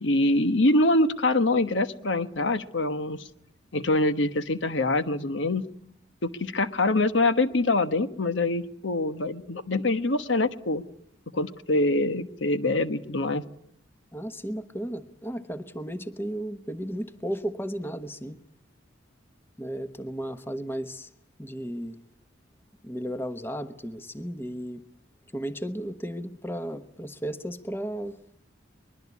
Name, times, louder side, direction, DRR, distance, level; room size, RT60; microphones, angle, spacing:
voice 1, 0.0-3.3 3.7-5.6 6.2-10.8 11.3-13.4, left 2 dB, 70° left, 10 dB, 1.2 m, -24 dB
voice 2, 14.1-18.4 19.6-21.1 21.4-22.0 22.8-24.8 25.3-28.1, equal, 10° left, 9 dB, 1.0 m, -34 dB
23.5 x 21.5 x 8.4 m, 0.73 s
head